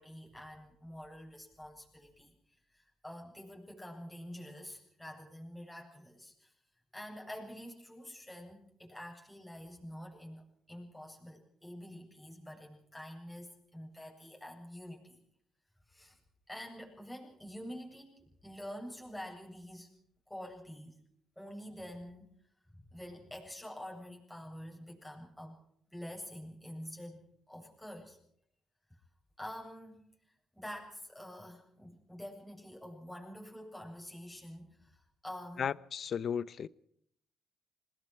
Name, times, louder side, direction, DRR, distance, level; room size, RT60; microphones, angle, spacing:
voice 1, 0.0-2.3 2.7-6.5 6.9-15.2 15.9-16.2 16.5-19.9 20.3-21.0 21.4-22.3 22.7-25.6 25.9-28.2 28.9-29.0 29.4-30.0 30.5-35.7, equal, 5° left, 7.9 m, -47 dB
voice 2, 35.6-36.7, left 7 dB, 55° left, 0.8 m, -35 dB
27.0 x 20.0 x 4.7 m
cardioid pair, 90°, 0 cm